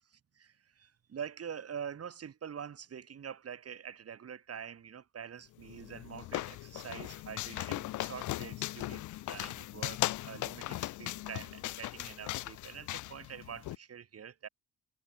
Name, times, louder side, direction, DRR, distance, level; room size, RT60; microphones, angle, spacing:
voice 1, 0.1-14.5, right 8 dB, 50° right, 7.0 m, -45 dB
sound 1, 5.6-13.8, left 16 dB, 75° left, 0.7 m, -38 dB
cardioid pair, 90°, 30 cm